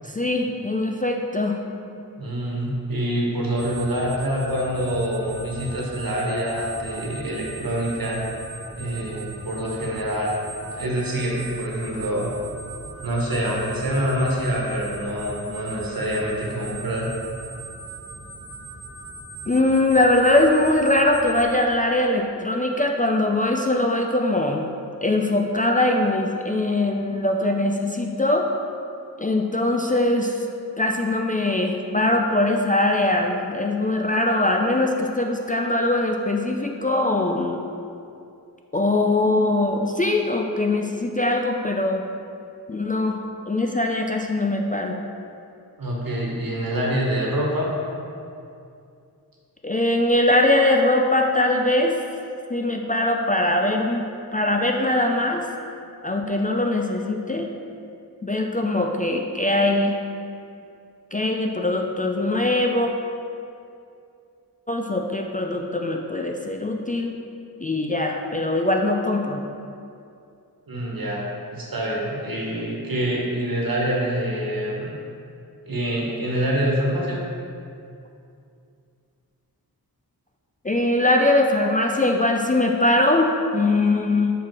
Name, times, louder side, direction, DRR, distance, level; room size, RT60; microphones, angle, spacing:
voice 1, 0.0-1.6 19.5-24.7 25.0-28.5 29.2-30.4 30.8-37.6 38.7-42.0 42.7-43.2 43.5-45.0 49.6-52.0 52.5-55.5 56.0-57.5 58.2-60.0 61.1-62.9 64.7-67.2 67.6-69.4 80.6-84.3, left 2 dB, 20° left, 2 dB, 0.4 m, -21 dB
voice 2, 2.2-8.2 8.8-10.4 10.7-12.3 13.0-17.1 45.8-47.7 70.7-71.2 71.5-75.0 75.7-77.2, equal, 65° right, -3 dB, 1.4 m, -26 dB
sound 1, 3.6-21.4, right 3 dB, 5° right, 1.1 m, -39 dB
5.9 x 4.6 x 4.7 m, 2.5 s
wide cardioid pair, 80°, 38 cm